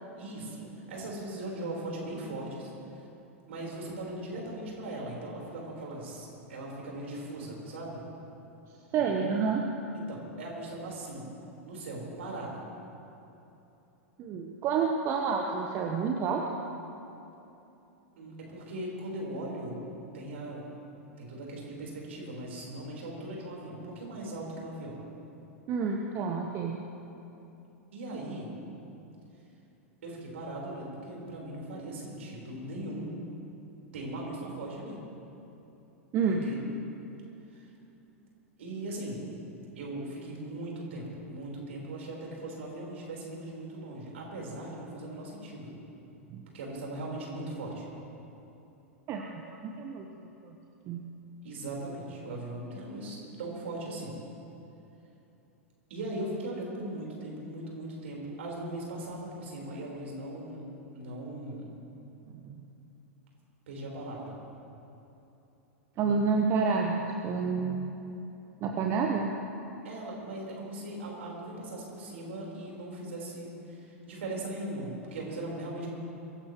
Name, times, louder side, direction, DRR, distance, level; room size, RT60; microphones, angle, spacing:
voice 1, 0.2-2.7 3.5-8.0 9.9-11.2 11.6-12.6 18.2-19.8 20.1-20.6 21.2-25.0 27.9-28.5 30.0-33.1 33.9-35.0 36.4-36.6 37.5-37.7 38.6-39.2 39.7-45.7 46.5-47.8 51.4-54.1 55.9-60.6 60.9-61.7 63.7-64.3 69.8-75.9, right 1 dB, 60° right, -2 dB, 4.3 m, -39 dB
voice 2, 8.9-9.7 14.2-16.6 25.7-26.9 36.1-36.5 46.3-46.4 49.1-50.1 50.4-50.5 50.9-51.0 62.3-62.5 66.0-67.9 68.6-69.3, right 5 dB, 35° right, 2 dB, 1.1 m, -29 dB
23.0 x 15.5 x 3.1 m, 2.9 s
figure-of-eight pair, 95°, 8 cm